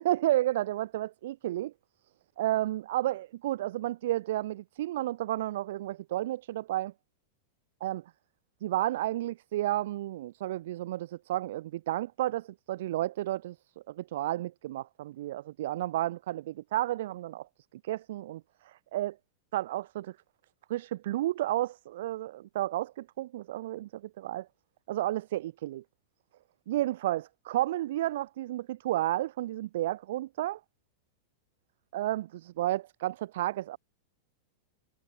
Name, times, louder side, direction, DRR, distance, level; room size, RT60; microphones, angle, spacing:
voice 1, 0.0-1.7 2.4-6.9 7.8-8.0 8.6-13.6 13.9-17.5 17.8-19.2 19.5-20.2 20.7-24.5 24.9-25.8 26.7-30.6 31.9-33.8, right 14 dB, 60° right, 5.7 m, -32 dB
figure-of-eight pair, 95°, 0 cm